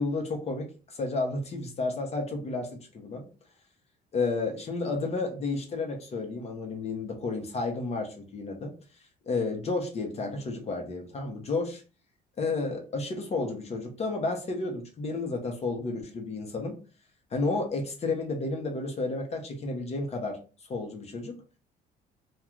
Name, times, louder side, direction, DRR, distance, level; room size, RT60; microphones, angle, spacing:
voice 1, 0.0-3.3 4.1-8.7 9.3-11.8 12.4-16.8 17.3-20.4 20.7-21.4, left 3 dB, 40° left, 3 dB, 0.8 m, -31 dB
2.3 x 2.3 x 3.0 m, 0.35 s
cardioid pair, 110°, 17 cm